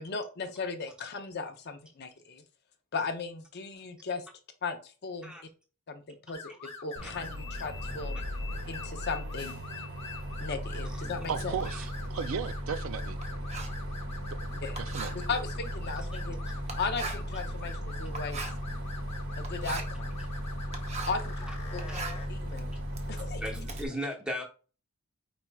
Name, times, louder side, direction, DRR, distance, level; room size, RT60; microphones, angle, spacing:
voice 1, 0.0-2.4 2.9-4.3 4.6-5.3 5.9-8.2 8.7-9.6 10.4-11.5 14.6-14.8 15.3-16.4 16.8-18.5 19.4-20.2 21.1-21.2 21.7-21.8 22.3-22.7 23.1-23.4, left 4 dB, 45° left, 0.6 m, -36 dB
sound 1, 6.3-22.3, left 4 dB, 30° left, 1.1 m, -46 dB
Bus, 7.0-23.9, equal, 80° right, 2.0 m, -37 dB
Writing, 11.1-21.3 21.7-23.8, right 4 dB, 30° right, 0.7 m, -42 dB
voice 2, 11.3-13.2 14.8-15.3, right 7 dB, 65° right, 0.4 m, -35 dB
voice 3, 23.4-24.4, equal, 5° right, 0.9 m, -36 dB
4.5 x 4.1 x 2.3 m
head